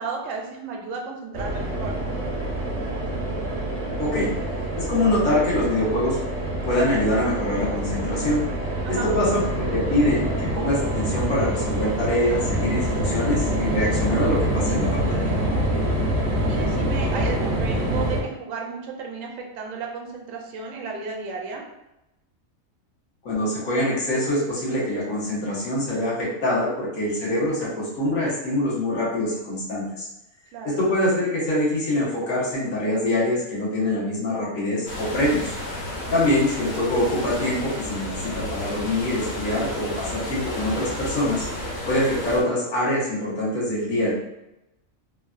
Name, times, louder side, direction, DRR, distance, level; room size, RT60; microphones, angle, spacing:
voice 1, 0.0-1.9 8.8-9.1 16.5-21.6 30.5-30.8 36.1-36.3, right 4 dB, 75° right, 1 dB, 0.9 m, -33 dB
sound 1, 1.3-18.2, right 1 dB, 55° right, 0.9 m, -26 dB
voice 2, 4.0-4.3 4.8-6.2 6.6-8.4 8.9-15.3 23.2-30.1 30.6-35.5 36.1-41.5 41.9-44.1, left 1 dB, 80° left, -6 dB, 1.4 m, -24 dB
sound 2, 34.9-42.4, left 1 dB, 50° left, 0.6 m, -32 dB
3.2 x 2.2 x 2.4 m, 0.91 s
omnidirectional pair, 1.4 m